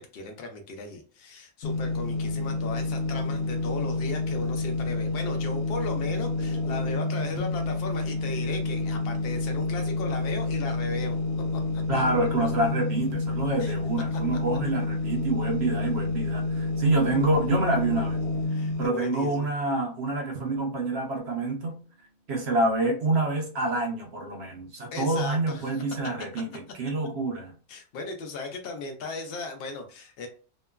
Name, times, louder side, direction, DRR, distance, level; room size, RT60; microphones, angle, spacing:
voice 1, 0.0-11.2 11.5-11.8 13.6-13.7 18.5-19.5 24.9-25.7 26.3-26.4 27.7-30.3, left 3 dB, 60° left, 0.6 m, -36 dB
sound 1, 1.6-18.9, left 3 dB, 75° left, 1.0 m, -29 dB
voice 2, 11.9-18.2 18.8-21.8 22.3-27.5, right 2 dB, 60° right, 0.7 m, -27 dB
Drum, 20.3-23.0, right 4 dB, 80° right, 1.1 m, -50 dB
2.9 x 2.2 x 2.3 m
omnidirectional pair, 1.6 m